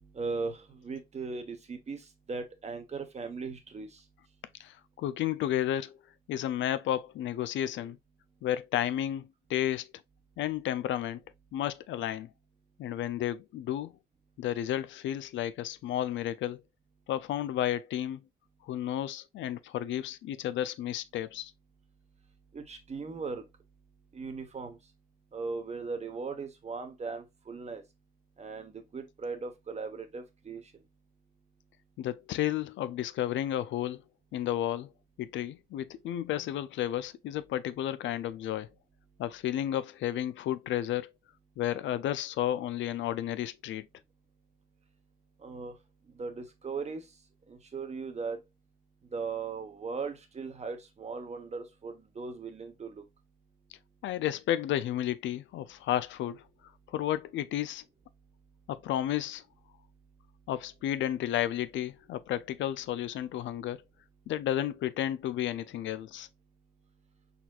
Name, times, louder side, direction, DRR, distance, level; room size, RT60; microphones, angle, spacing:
voice 1, 0.1-2.0 2.3-3.9 22.5-23.4 24.1-24.8 25.3-27.8 28.4-30.6 45.4-45.7 46.2-47.0 47.5-48.4 49.1-53.0, right 4 dB, 35° right, 1.1 m, -38 dB
voice 2, 4.6-6.0 6.3-8.0 8.4-9.9 10.4-11.2 11.5-12.3 12.8-13.9 14.4-16.6 17.1-18.2 18.7-21.5 32.0-34.0 34.3-34.9 35.2-38.7 39.2-41.1 41.6-43.9 54.0-56.4 56.9-57.8 58.7-59.4 60.5-63.8 64.3-66.3, left 12 dB, 70° left, 0.4 m, -32 dB
4.3 x 4.1 x 2.4 m
cardioid pair, 90°, 20 cm